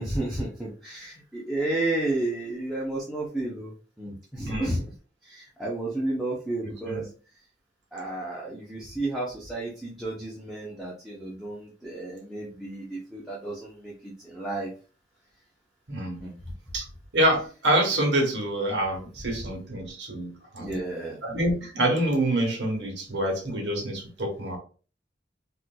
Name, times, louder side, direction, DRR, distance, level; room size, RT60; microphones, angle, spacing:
voice 1, 0.0-4.8 5.2-7.1 7.9-14.7 16.2-16.5 20.6-21.2, right 2 dB, ahead, -6 dB, 0.7 m, -32 dB
voice 2, 15.9-16.2 16.7-16.8 17.1-20.7 21.2-24.6, right 1 dB, 90° right, 1 dB, 1.2 m, -26 dB
4.3 x 2.5 x 2.3 m, 0.38 s
head